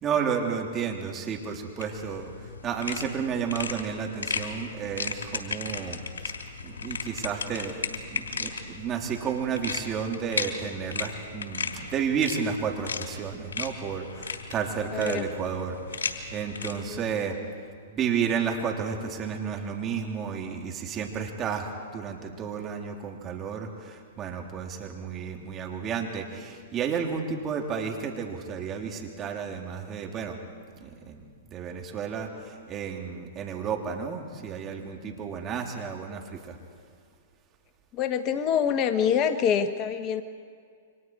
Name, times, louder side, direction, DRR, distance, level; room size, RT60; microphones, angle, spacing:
voice 1, 0.0-6.0 6.6-7.8 8.1-17.4 17.9-30.4 30.8-36.6, right 6 dB, 25° right, 1 dB, 3.3 m, -32 dB
sound 1, 1.8-17.1, left 5 dB, 80° left, 3.0 m, -36 dB
voice 2, 14.9-15.3 16.9-17.0 37.9-40.2, left 8 dB, 35° left, 9 dB, 1.1 m, -25 dB
29.0 x 25.0 x 4.8 m, 2.2 s
hypercardioid pair, 120°, 0 cm